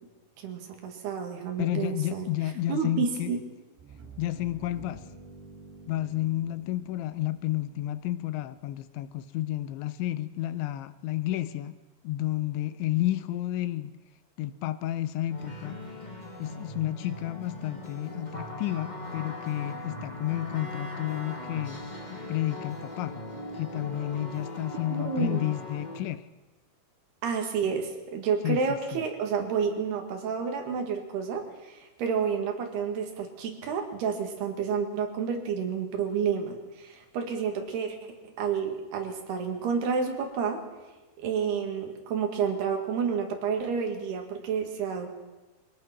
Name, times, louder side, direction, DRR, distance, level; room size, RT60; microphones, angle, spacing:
voice 1, 0.4-2.3 2.7-3.4 24.9-25.4 27.2-40.6 41.2-45.1, right 6 dB, 65° right, 4 dB, 3.9 m, -30 dB
voice 2, 1.6-3.3 4.2-5.0 5.9-11.8 12.0-13.9 14.4-15.8 16.4-21.8 22.3-23.1 23.6-26.3 28.4-29.0, left 14 dB, 85° left, 14 dB, 3.1 m, -31 dB
sound 1, 3.8-8.6, right 3 dB, 90° right, 6.0 m, -50 dB
sound 2, 15.3-26.0, left 2 dB, 45° left, 0.5 m, -39 dB
23.5 x 18.5 x 6.1 m, 1.1 s
omnidirectional pair, 5.2 m